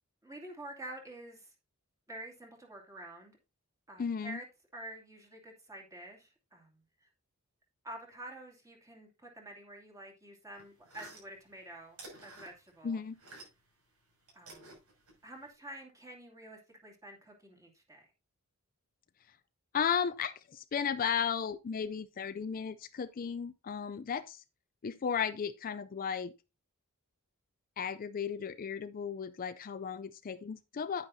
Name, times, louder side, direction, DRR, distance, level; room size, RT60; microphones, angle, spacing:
voice 1, 0.2-1.5 2.1-3.4 3.9-4.5 4.7-7.1 7.8-13.0 14.3-14.8 15.2-18.1, right 1 dB, 15° right, 2.4 m, -48 dB
voice 2, 4.0-4.4 12.8-13.2 19.7-24.4 24.8-26.3 27.8-31.1, left 7 dB, 40° left, 0.4 m, -35 dB
sound 1, 10.5-13.8 14.0-15.5, right 2 dB, 85° right, 6.3 m, -53 dB
9.8 x 9.3 x 2.7 m
head